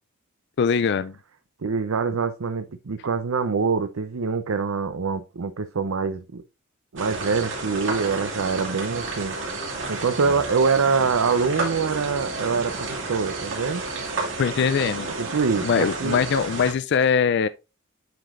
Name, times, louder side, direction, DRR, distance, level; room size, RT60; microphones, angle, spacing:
voice 1, 0.6-1.1 14.4-15.1 15.6-17.5, left 6 dB, 55° left, 0.4 m, -22 dB
voice 2, 1.6-6.4 6.9-9.4 9.9-13.8 15.2-16.2, right 5 dB, 80° right, 0.6 m, -25 dB
sound 1, 7.0-16.7, right 3 dB, 60° right, 2.8 m, -31 dB
9.2 x 5.0 x 2.5 m
head